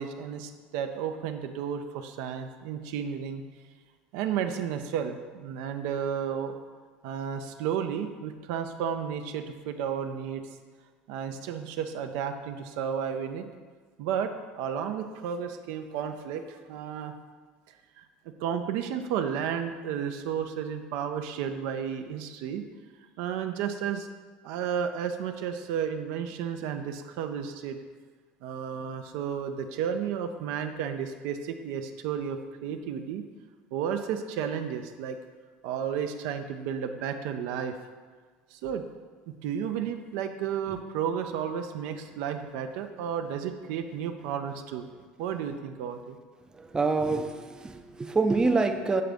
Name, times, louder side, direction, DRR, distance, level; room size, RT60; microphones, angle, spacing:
voice 1, 0.0-3.4 4.1-6.5 7.0-10.4 11.1-13.5 14.0-17.1 18.0-18.1 18.4-22.6 23.2-24.1 24.4-27.8 28.4-33.2 33.7-35.2 35.6-37.8 38.5-38.9 39.4-44.9 45.2-46.2, right 8 dB, 75° right, 7 dB, 0.5 m, -32 dB
voice 2, 46.6-49.0, right 3 dB, 15° right, 6 dB, 0.4 m, -26 dB
7.6 x 3.8 x 3.5 m, 1.5 s
supercardioid pair, 100°, 5 cm